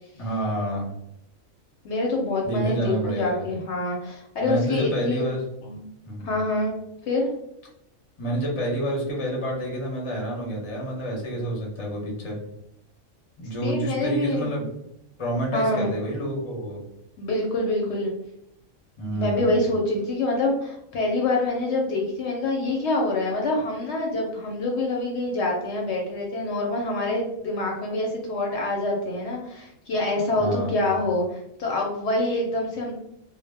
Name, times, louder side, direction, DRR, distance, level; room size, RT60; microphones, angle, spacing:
voice 1, 0.1-0.9 2.4-3.4 4.4-5.4 6.0-6.4 8.2-12.4 13.4-14.7 15.2-16.8 19.0-19.6 30.4-30.9, right 1 dB, 35° left, -1 dB, 0.6 m, -28 dB
voice 2, 1.8-5.2 5.6-5.8 6.2-6.7 7.0-7.3 13.6-14.5 15.5-15.9 17.2-18.1 19.1-32.9, left 2 dB, 70° left, 0 dB, 0.8 m, -26 dB
2.1 x 2.0 x 3.2 m, 0.78 s
omnidirectional pair, 1.3 m